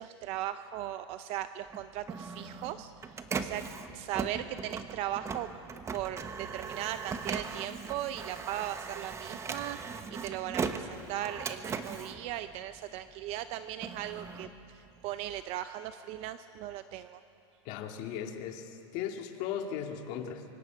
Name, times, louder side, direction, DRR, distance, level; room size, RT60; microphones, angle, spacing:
voice 1, 0.0-3.6 3.9-5.5 5.9-17.2, right 12 dB, 45° right, 11 dB, 0.6 m, -38 dB
Printer, 1.7-13.1 13.5-15.4, right 5 dB, 20° right, 1.0 m, -39 dB
voice 2, 17.7-20.4, left 8 dB, 50° left, 4 dB, 2.0 m, -37 dB
25.5 x 25.0 x 5.0 m, 2.6 s
supercardioid pair, 140°, 15 cm